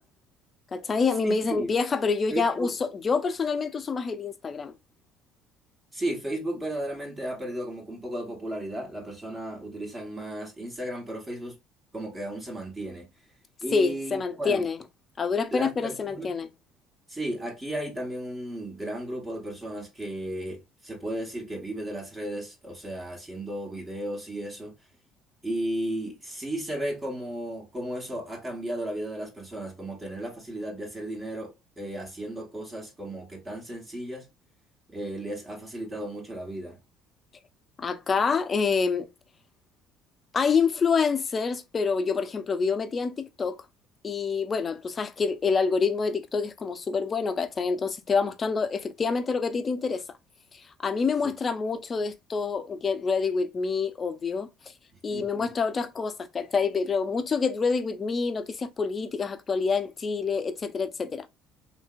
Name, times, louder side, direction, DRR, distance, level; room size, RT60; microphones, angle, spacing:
voice 1, 0.7-4.7 13.7-14.8 15.2-16.5 37.8-39.1 40.3-43.6 44.0-50.0 50.5-54.5 55.0-61.3, left 5 dB, 35° left, 0.5 m, -27 dB
voice 2, 1.2-1.7 2.3-2.7 5.9-11.6 11.9-13.1 13.6-14.6 15.5-16.3 17.1-24.7 25.4-34.3 34.9-36.8 51.2-51.3 55.1-55.5, right 1 dB, 20° right, 1.2 m, -34 dB
2.9 x 2.9 x 2.3 m
supercardioid pair, 80°, 0 cm